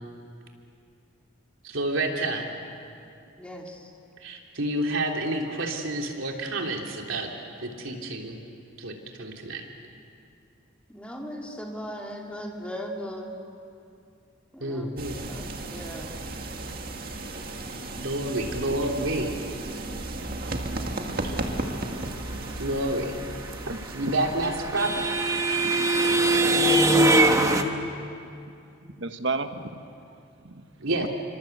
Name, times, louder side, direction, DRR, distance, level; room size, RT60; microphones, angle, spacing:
voice 1, 1.6-2.5 4.2-7.3 7.6-8.4 8.8-9.6 14.6-15.2 18.0-19.4 22.6-23.1 23.9-24.9 30.8-31.1, right 1 dB, 80° right, 1 dB, 3.3 m, -29 dB
voice 2, 3.4-3.9 10.9-13.3 14.5-14.9 15.2-16.1, equal, 5° left, 0 dB, 2.9 m, -38 dB
sound 1, 15.0-25.3, right 2 dB, 45° right, 2.0 m, -35 dB
voice 3, 23.7-24.1 25.6-26.3 29.0-29.6 30.4-31.1, right 3 dB, 65° right, 8 dB, 1.4 m, -34 dB
sound 2, 23.8-27.6, right 2 dB, 15° right, 1.2 m, -21 dB
28.5 x 25.5 x 8.1 m, 2.5 s
head